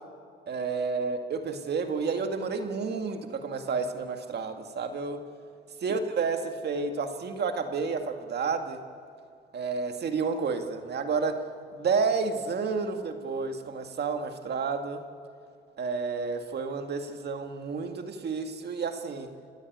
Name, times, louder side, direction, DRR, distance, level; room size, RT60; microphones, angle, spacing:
voice 1, 0.5-5.2 5.8-8.8 9.5-11.4 11.8-15.0 15.8-19.3, right 4 dB, 55° right, 6 dB, 2.1 m, -30 dB
28.5 x 15.5 x 9.5 m, 2.4 s
cardioid pair, 90°, 20 cm